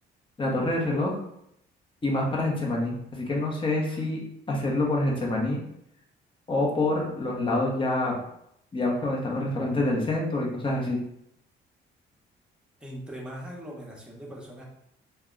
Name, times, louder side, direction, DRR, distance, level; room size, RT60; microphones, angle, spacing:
voice 1, 0.4-1.2 2.0-4.2 4.5-5.6 6.5-8.2 8.7-11.0, left 2 dB, 25° left, -2 dB, 0.9 m, -26 dB
voice 2, 12.8-14.6, equal, 5° right, -3 dB, 1.0 m, -40 dB
2.7 x 2.2 x 3.7 m, 0.76 s
cardioid pair, 90°, 20 cm